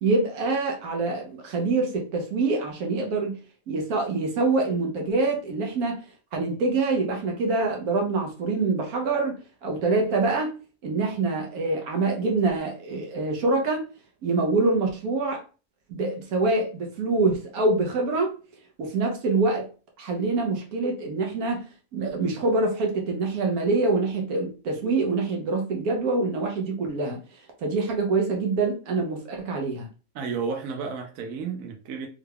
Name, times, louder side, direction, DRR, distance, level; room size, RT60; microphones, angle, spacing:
voice 1, 0.0-3.4 3.7-6.0 6.3-10.5 10.8-13.8 14.2-15.4 15.9-18.3 18.8-19.7 20.0-21.6 21.9-27.2 27.6-29.9, right 3 dB, 90° right, 1.3 m, -25 dB
voice 2, 30.1-32.1, right 5 dB, 70° right, 1.0 m, -32 dB
3.6 x 2.2 x 3.3 m
omnidirectional pair, 1.5 m